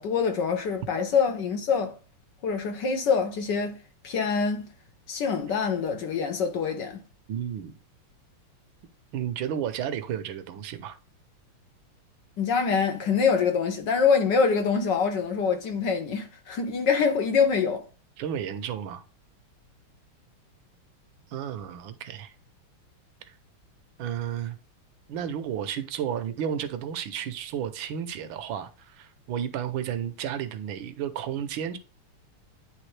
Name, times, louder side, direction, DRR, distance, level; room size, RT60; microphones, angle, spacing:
voice 1, 0.0-2.0 2.4-3.8 4.0-4.7 5.1-7.0 12.4-17.8, left 5 dB, 60° left, 1.4 m, -25 dB
voice 2, 7.3-7.7 9.1-11.0 18.2-19.0 21.3-22.3 23.2-23.4 24.0-24.6 25.1-31.8, right 9 dB, 70° right, 1.4 m, -32 dB
9.9 x 3.4 x 3.2 m
omnidirectional pair, 2.4 m